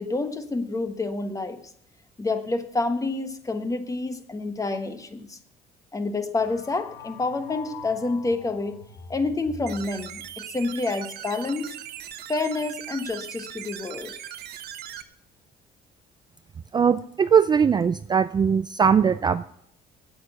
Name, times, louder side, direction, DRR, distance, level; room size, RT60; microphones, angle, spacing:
voice 1, 0.0-1.6 2.2-5.4 5.9-8.7 9.1-11.7 12.3-14.2, left 3 dB, 20° left, 9 dB, 1.2 m, -28 dB
sound 1, 6.4-10.4, left 5 dB, 90° left, 1.5 m, -43 dB
sound 2, 9.7-15.0, right 11 dB, 70° right, 1.0 m, -39 dB
voice 2, 16.7-19.6, right 7 dB, 25° right, 13 dB, 0.4 m, -20 dB
8.8 x 8.6 x 8.1 m, 0.69 s
cardioid pair, 110°, 17 cm